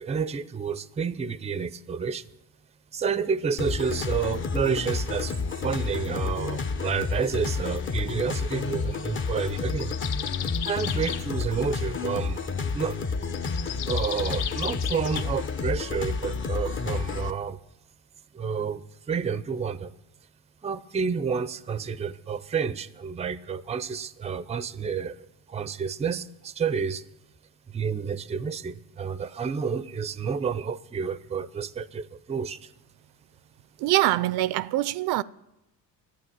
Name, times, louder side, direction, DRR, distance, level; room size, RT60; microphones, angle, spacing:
voice 1, 0.0-2.2 2.9-5.3 5.6-9.9 10.6-12.4 12.7-13.0 13.9-17.6 18.3-19.9 20.6-27.0 27.7-32.7, right 6 dB, 15° right, 0.5 m, -30 dB
sound 1, 3.6-17.3, left 4 dB, 30° left, 0.8 m, -30 dB
sound 2, 8.8-11.3 13.2-15.2, left 10 dB, 65° left, 0.7 m, -35 dB
voice 2, 33.8-35.2, right 15 dB, 65° right, 0.5 m, -24 dB
11.5 x 8.8 x 7.3 m
supercardioid pair, 80°, 42 cm